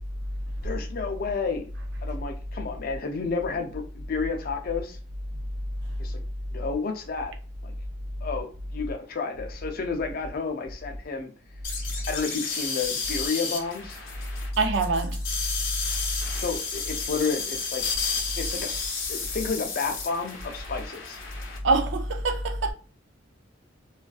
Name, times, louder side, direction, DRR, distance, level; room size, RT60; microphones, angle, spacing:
voice 1, 0.6-1.7 2.0-5.0 6.0-6.2 6.5-7.3 7.6-7.7 8.2-11.3 11.9-14.0 16.3-17.8 18.4-18.8 19.1-21.2, left 4 dB, 50° left, 0.4 m, -31 dB
sound 1, 11.6-21.6, left 5 dB, 90° left, 0.6 m, -32 dB
voice 2, 14.6-15.2 21.6-22.7, right 3 dB, 65° right, 0.4 m, -24 dB
2.4 x 2.3 x 2.3 m
head